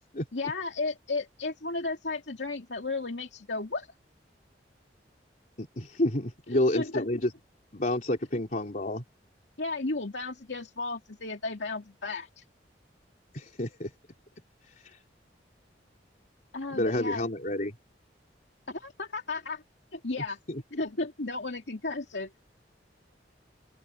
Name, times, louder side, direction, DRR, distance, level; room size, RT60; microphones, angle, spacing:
voice 1, 0.3-3.9 6.5-7.1 9.6-12.4 16.5-17.3 18.7-19.6 19.9-20.4 20.7-22.3, left 3 dB, 85° left, 2.3 m, -34 dB
voice 2, 5.6-7.3 7.7-9.0 13.3-13.9 14.6-15.0 16.7-17.7 20.5-20.6, left 1 dB, 45° left, 3.7 m, -29 dB
open air
head